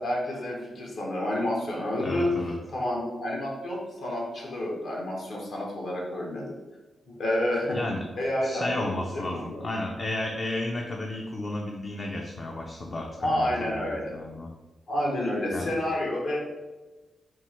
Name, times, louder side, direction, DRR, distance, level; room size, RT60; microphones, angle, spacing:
voice 1, 0.0-2.3 2.7-6.6 7.1-7.8 8.2-8.8 9.1-9.7 13.2-14.1 14.9-16.4, left 1 dB, 70° left, -2 dB, 1.2 m, -29 dB
voice 2, 2.0-2.6 7.7-8.0 8.4-14.5 15.5-15.7, left 2 dB, 45° left, 0 dB, 0.5 m, -33 dB
4.4 x 2.2 x 4.4 m, 1.2 s
cardioid pair, 95°, 0 cm